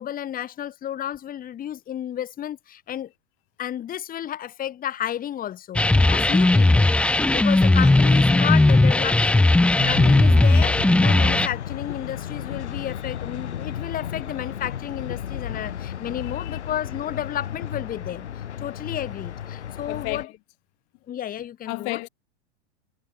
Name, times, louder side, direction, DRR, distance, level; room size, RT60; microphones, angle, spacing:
voice 1, 0.0-3.1 3.6-5.8 6.1-7.0 7.3-18.3 18.6-20.3 21.1-22.1, left 11 dB, 25° left, 2.1 m, -32 dB
sound 1, 5.8-11.5, left 2 dB, 5° left, 0.5 m, -17 dB
sound 2, 9.8-20.3, left 9 dB, 80° left, 1.6 m, -33 dB
voice 2, 19.9-20.3 21.7-22.1, left 34 dB, 45° left, 2.1 m, -32 dB
hypercardioid pair, 110°, 34 cm